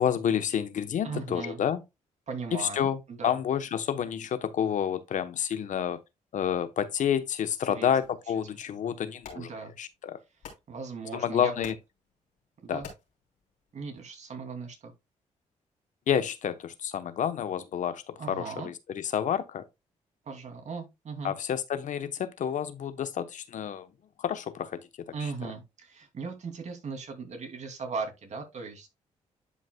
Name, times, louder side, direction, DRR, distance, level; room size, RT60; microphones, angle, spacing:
voice 1, 0.0-1.8 2.5-6.0 6.3-9.5 9.8-10.2 11.1-11.7 12.7-12.8 16.1-19.7 21.2-23.9 24.2-24.9 25.2-25.3, left 9 dB, 70° left, 0.9 m, -29 dB
voice 2, 1.0-1.6 2.3-3.3 7.7-7.9 9.3-9.7 10.7-11.5 12.6-12.9 13.7-14.9 18.2-18.7 20.3-21.3 25.1-28.9, right 4 dB, 60° right, 2.6 m, -38 dB
sound 1, 8.0-14.1, left 6 dB, 85° left, 3.1 m, -52 dB
11.0 x 5.2 x 2.2 m
cardioid pair, 70°, 14 cm